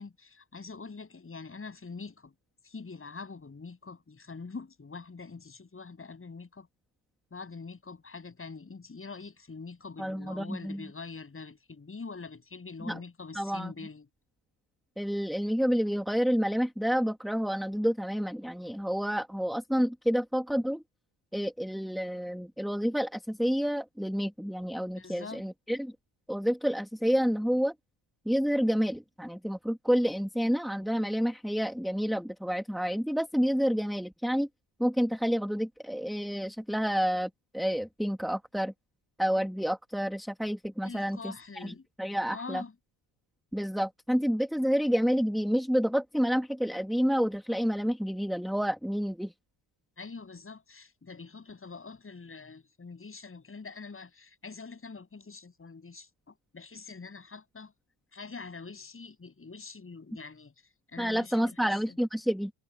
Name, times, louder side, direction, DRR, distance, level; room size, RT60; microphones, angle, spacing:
voice 1, 0.0-2.3 2.6-6.7 7.3-14.1 25.0-25.4 40.8-41.9 42.3-42.7 50.0-57.7 58.1-60.5 60.9-61.9, left 4 dB, 25° left, 7.8 m, -44 dB
voice 2, 10.0-10.9 12.9-13.0 13.4-13.7 15.0-20.8 21.3-25.9 26.3-27.7 28.3-34.5 34.8-38.7 39.2-42.6 43.5-49.3 61.0-62.5, equal, ahead, 1.8 m, -29 dB
cardioid pair, 115°, 48 cm